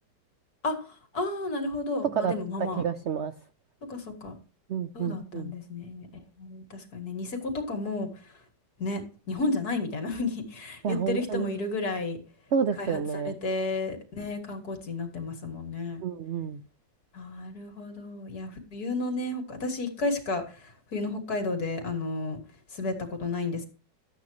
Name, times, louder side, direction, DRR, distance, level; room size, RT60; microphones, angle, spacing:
voice 1, 0.6-2.8 3.9-4.4 4.9-6.1 6.4-8.3 8.8-9.0 9.3-12.2 12.8-16.0 17.1-22.4 22.7-22.9 23.2-23.7, left 3 dB, 60° left, 5 dB, 2.5 m, -32 dB
voice 2, 2.8-3.3 4.7-5.5 10.8-11.5 12.5-13.3 16.0-16.6, right 7 dB, 75° right, 10 dB, 0.6 m, -29 dB
12.5 x 8.5 x 3.2 m, 0.36 s
omnidirectional pair, 1.9 m